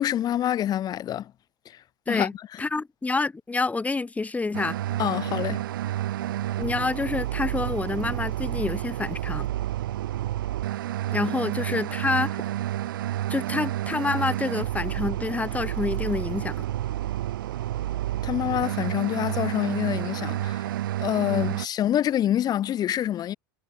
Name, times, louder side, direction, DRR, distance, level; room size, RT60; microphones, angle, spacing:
voice 1, 0.0-1.3 1.7-1.8 2.1-2.6 5.0-5.6 18.2-20.6 21.0-23.3, left 11 dB, 35° left, 1.2 m, -26 dB
voice 2, 2.6-4.8 6.6-9.5 11.1-12.4 13.3-16.6 21.3-21.5, left 3 dB, 15° left, 2.0 m, -28 dB
sound 1, 4.5-21.7, right 13 dB, 80° right, 2.2 m, -30 dB
hypercardioid pair, 90°, 11 cm